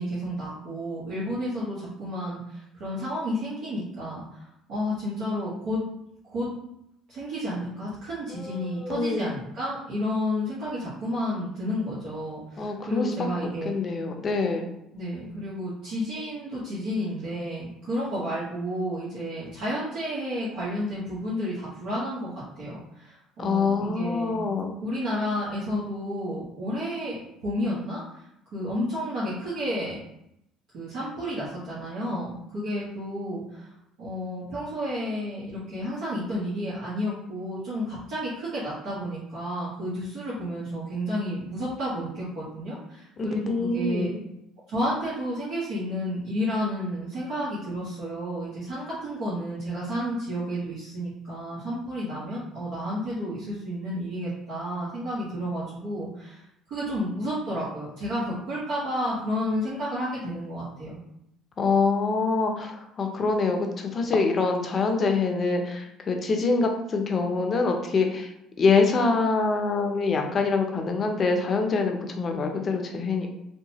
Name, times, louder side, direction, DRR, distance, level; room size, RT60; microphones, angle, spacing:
voice 1, 0.0-5.8 6.3-6.5 7.1-13.8 14.9-22.3 22.6-24.4 24.8-28.2 28.5-30.0 30.7-33.7 34.0-44.1 44.7-56.4 56.7-61.0, equal, 65° right, -9 dB, 1.0 m, -31 dB
voice 2, 8.3-9.3 12.6-13.1 13.6-14.6 23.4-24.7 43.2-44.2 61.6-68.3 68.6-73.3, left 4 dB, 35° left, 4 dB, 0.5 m, -25 dB
2.8 x 2.2 x 2.8 m, 0.81 s
supercardioid pair, 100°, 0 cm